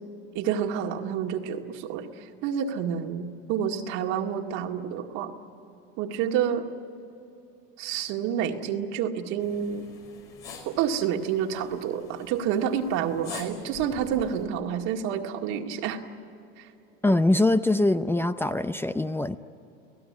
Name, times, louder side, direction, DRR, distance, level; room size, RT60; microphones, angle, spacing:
voice 1, 0.3-5.3 6.0-6.7 7.8-9.9 10.7-16.0 16.6-16.7, right 8 dB, 65° right, 3 dB, 2.1 m, -29 dB
sound 1, 9.4-14.4, left 5 dB, 85° left, 5.4 m, -45 dB
voice 2, 17.0-19.4, left 2 dB, 10° left, 10 dB, 0.6 m, -23 dB
30.0 x 17.5 x 9.6 m, 2.8 s
supercardioid pair, 100°, 29 cm